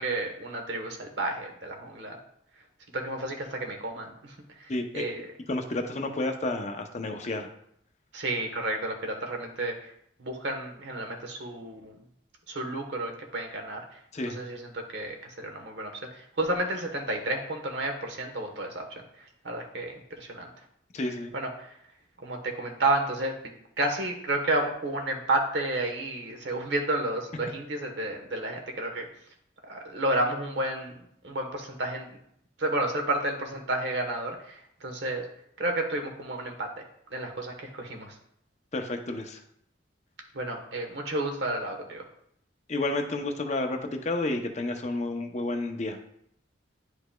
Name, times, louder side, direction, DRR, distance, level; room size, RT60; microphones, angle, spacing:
voice 1, 0.0-2.2 2.9-5.3 8.1-9.9 10.2-11.9 12.5-13.8 14.3-20.5 21.3-21.8 22.2-29.1 29.6-30.9 31.2-32.1 32.6-35.3 35.6-36.7 37.1-38.2 40.3-42.0, right 2 dB, 65° right, 3 dB, 1.1 m, -31 dB
voice 2, 4.7-5.0 5.5-7.5 14.1-14.4 20.9-21.3 38.7-39.4 42.7-46.0, left 2 dB, 35° left, 5 dB, 0.6 m, -31 dB
10.0 x 4.8 x 2.2 m, 0.72 s
head